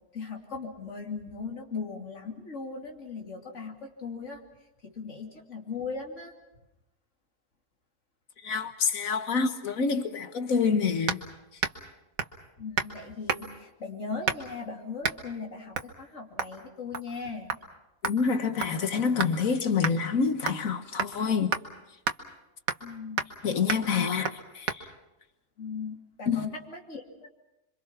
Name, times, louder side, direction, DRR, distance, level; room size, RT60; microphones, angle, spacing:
voice 1, 0.1-4.4 4.8-6.3 12.6-17.5 22.8-23.2 23.7-24.1 25.6-27.3, left 4 dB, 60° left, 3.1 m, -38 dB
voice 2, 8.4-11.2 18.0-21.5 23.4-24.3 24.6-24.9 26.3-26.5, left 5 dB, 75° left, 1.7 m, -27 dB
sound 1, 11.1-11.3 11.6-11.9 12.2-12.4 12.8-13.0 13.3-13.6 14.3-14.6 15.0-15.2 15.7-15.9 16.4-16.6 16.9-17.2 17.5-17.6 18.0-19.4 19.8-20.0 20.5-20.7 21.0-21.1 21.5-21.6 22.1-22.2 22.7-22.9 23.2-23.4 23.7-23.9 24.2-24.4 24.7-24.8, right 6 dB, 90° right, 1.7 m, -31 dB
27.0 x 24.5 x 5.9 m
omnidirectional pair, 1.4 m